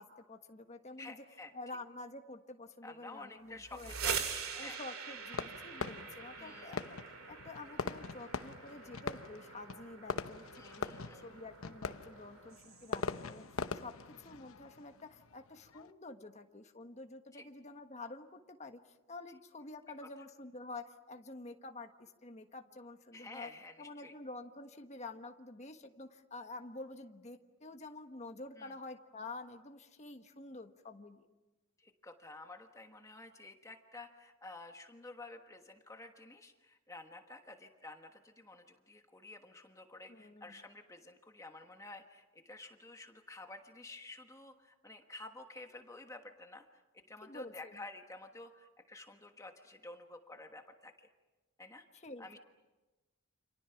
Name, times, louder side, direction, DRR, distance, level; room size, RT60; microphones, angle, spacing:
voice 1, 0.0-1.2 1.5-4.2 4.5-7.0 7.3-23.5 23.8-31.3 40.1-40.6 47.2-47.8 52.0-52.4, left 2 dB, 30° left, 6 dB, 1.4 m, -49 dB
voice 2, 1.0-1.5 2.8-4.8 6.4-6.9 10.6-11.3 17.3-17.5 23.1-24.1 28.5-28.7 31.8-46.7 47.1-51.1 51.6-51.8 52.2-52.4, left 2 dB, 15° left, 5 dB, 1.3 m, -51 dB
sound 1, 3.6-13.3, right 6 dB, 75° right, 2.5 m, -44 dB
Fireworks, 5.3-15.9, left 4 dB, 75° left, 0.9 m, -43 dB
29.5 x 27.0 x 5.9 m, 1.1 s
head